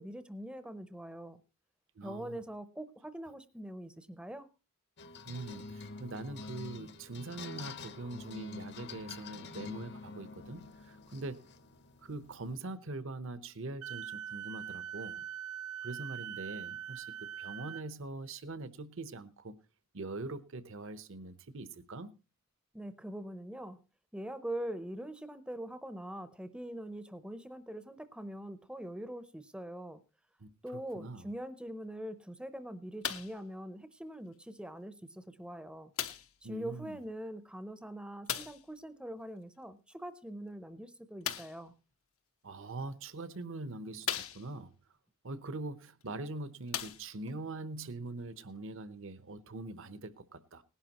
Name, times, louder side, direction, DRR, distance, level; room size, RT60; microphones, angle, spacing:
voice 1, 0.0-1.4 2.0-4.5 22.7-23.8 24.1-30.0 30.6-35.9 36.4-41.7, right 1 dB, 5° right, 0.6 m, -43 dB
voice 2, 2.0-2.4 5.3-11.5 12.0-15.3 15.8-19.5 19.9-22.1 30.4-31.3 36.4-37.0 42.4-44.7 45.2-50.6, right 2 dB, 60° right, 0.9 m, -43 dB
sound 1, 5.0-12.6, left 4 dB, 55° left, 0.9 m, -47 dB
Wind instrument woodwind instrument, 13.8-17.9, right 9 dB, 85° right, 0.6 m, -42 dB
sound 2, 33.0-33.4 34.3-34.4 36.0-36.4 38.3-38.7 41.2-41.6 42.6-42.7 43.3-43.4 44.0-44.7 46.0-46.1 46.6-47.4 48.2-48.3, left 10 dB, 80° left, 1.1 m, -38 dB
19.0 x 11.5 x 2.9 m
head